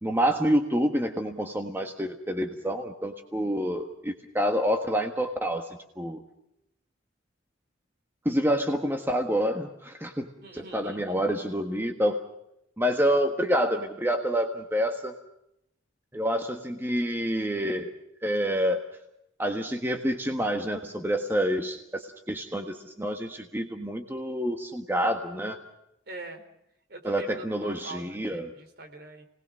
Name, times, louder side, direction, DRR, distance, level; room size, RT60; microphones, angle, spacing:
voice 1, 0.0-5.7 6.0-6.2 8.2-10.3 10.5-12.2 12.8-15.1 16.1-17.9 18.2-18.8 19.4-25.6 27.0-28.5, equal, 10° right, 5 dB, 1.4 m, -27 dB
voice 2, 10.4-11.2 26.1-26.5 26.9-29.3, right 2 dB, 55° right, 5 dB, 4.1 m, -44 dB
29.5 x 20.0 x 6.4 m, 0.79 s
head